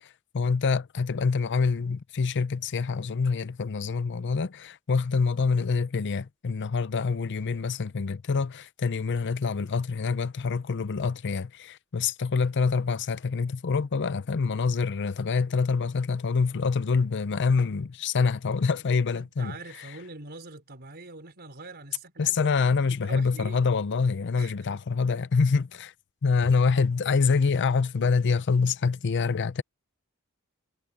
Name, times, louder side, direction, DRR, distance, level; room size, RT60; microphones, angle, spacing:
voice 1, 0.0-19.9 22.2-25.9 26.2-29.6, left 5 dB, 55° left, 0.6 m, -26 dB
voice 2, 19.1-23.6 24.4-24.5, right 3 dB, 50° right, 4.7 m, -44 dB
head